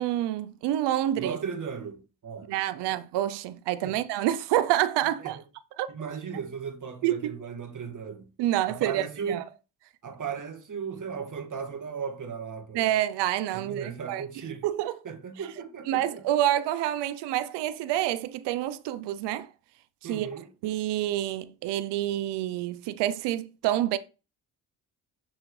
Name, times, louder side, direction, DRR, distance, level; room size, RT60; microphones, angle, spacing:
voice 1, 0.0-1.4 2.5-5.4 5.8-5.9 7.0-7.4 8.4-9.4 12.7-14.2 14.6-14.9 15.9-19.5 20.1-20.3 20.6-24.0, right 13 dB, 90° right, 0.6 m, -27 dB
voice 2, 1.2-2.9 3.8-4.0 5.2-5.4 5.9-8.3 8.7-9.4 10.0-12.9 13.5-14.6 15.0-16.3 20.0-20.5, right 6 dB, 50° right, 1.8 m, -36 dB
6.3 x 6.2 x 3.2 m
cardioid pair, 70°, 40 cm